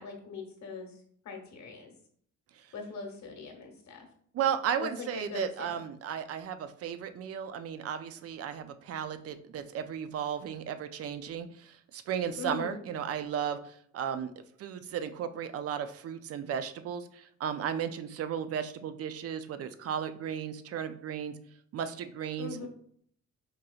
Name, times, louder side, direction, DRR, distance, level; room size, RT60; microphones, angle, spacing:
voice 1, 0.0-1.9 2.7-4.1 4.8-5.8 12.4-12.8 22.4-22.7, left 4 dB, 65° left, 2 dB, 1.1 m, -41 dB
voice 2, 4.3-14.3 14.6-21.4 21.7-22.7, right 8 dB, 55° right, 11 dB, 0.4 m, -35 dB
4.6 x 2.8 x 2.3 m, 0.63 s
cardioid pair, 90°, 30 cm